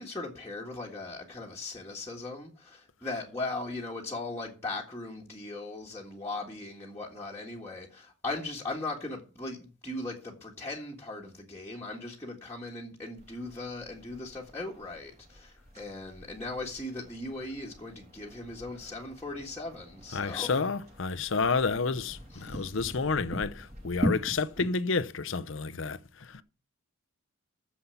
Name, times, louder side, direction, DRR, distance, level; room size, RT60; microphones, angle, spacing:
voice 1, 0.0-20.7 22.3-22.8, left 2 dB, 10° left, 1.7 m, -39 dB
sound 1, 13.2-24.7, equal, 30° right, 3.0 m, -41 dB
voice 2, 20.1-26.4, left 4 dB, 60° left, 0.7 m, -30 dB
9.7 x 7.3 x 7.0 m
head